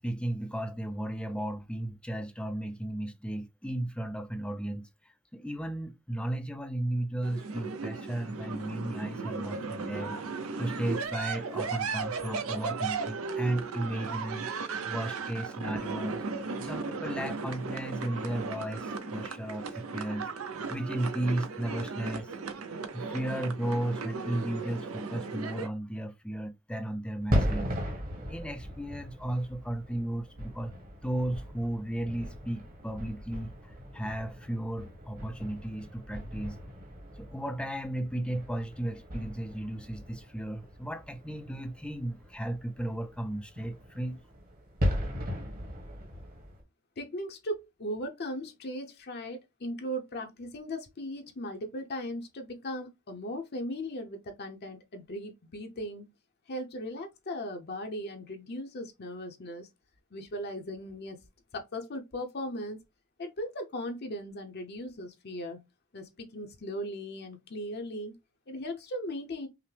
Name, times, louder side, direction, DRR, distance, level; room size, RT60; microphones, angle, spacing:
voice 1, 0.0-10.2 10.6-16.2 16.6-20.3 20.7-22.3 22.9-27.7 28.2-30.7 31.0-36.6 37.2-44.2, right 1 dB, 5° left, 0.4 m, -35 dB
sound 1, 7.2-25.7, right 4 dB, 90° right, 0.7 m, -36 dB
sound 2, 27.2-46.6, equal, 45° right, 1.4 m, -37 dB
voice 2, 47.0-56.1 56.5-59.7 60.1-61.2 61.5-62.8 63.2-65.6 65.9-68.1 68.5-69.5, equal, 50° left, 0.7 m, -38 dB
5.7 x 2.1 x 3.3 m
head